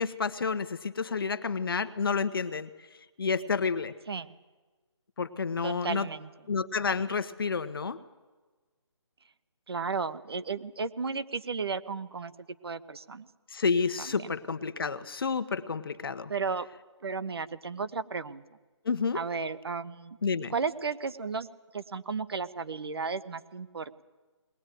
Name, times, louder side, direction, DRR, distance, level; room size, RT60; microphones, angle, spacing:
voice 1, 0.0-2.7 3.2-3.9 5.2-6.1 6.5-8.0 13.5-16.3 18.8-19.2 20.2-20.5, left 5 dB, 50° left, 12 dB, 1.1 m, -30 dB
voice 2, 5.6-6.3 9.7-12.3 12.6-13.3 14.0-14.3 16.3-16.7 17.0-18.4 19.1-20.2 20.5-21.5 21.7-24.0, right 5 dB, 55° right, 13 dB, 1.2 m, -34 dB
21.0 x 18.5 x 9.2 m, 1.3 s
hypercardioid pair, 170°, 15 cm